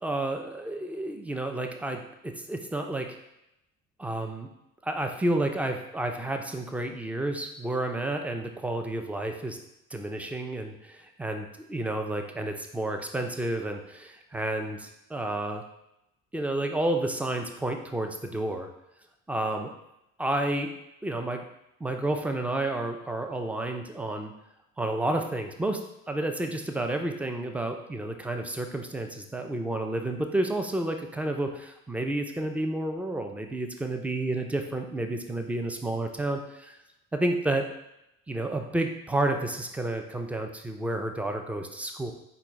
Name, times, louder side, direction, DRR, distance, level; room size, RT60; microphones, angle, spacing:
voice 1, 0.0-3.2 4.0-4.5 4.8-9.6 9.9-15.6 16.3-18.7 19.3-19.7 20.2-20.7 21.0-21.4 21.8-24.3 24.8-36.8 37.1-37.7 38.3-42.1, right 1 dB, 5° right, 5 dB, 0.3 m, -30 dB
4.5 x 2.3 x 3.9 m, 0.85 s
figure-of-eight pair, 50°, 41 cm